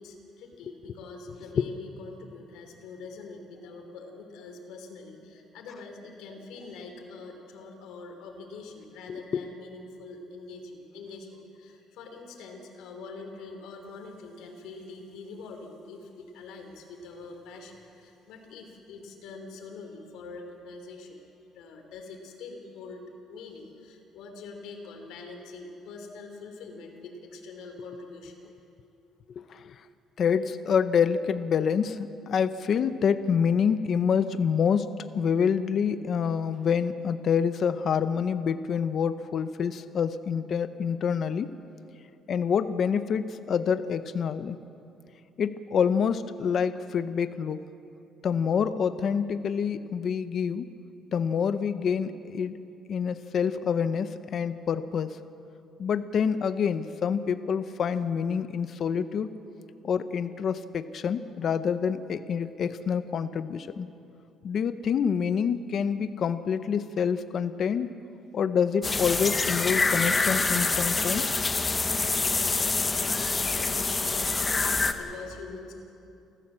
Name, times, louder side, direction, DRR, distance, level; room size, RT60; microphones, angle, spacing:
voice 1, 0.0-21.2 21.5-23.0 23.3-28.3 66.6-66.7 72.0-75.7, left 3 dB, 85° left, 3 dB, 3.4 m, -44 dB
voice 2, 9.1-9.4 29.4-29.8 30.2-41.5 42.3-44.6 45.4-47.6 48.2-50.7 51.1-52.6 52.9-55.2 55.8-59.3 59.8-63.9 64.4-67.9 68.3-71.3, left 7 dB, 40° left, 12 dB, 0.6 m, -27 dB
sound 1, 68.8-74.9, left 3 dB, 15° left, 0.9 m, -26 dB
29.5 x 14.5 x 7.5 m, 2.7 s
cardioid pair, 175°, 0 cm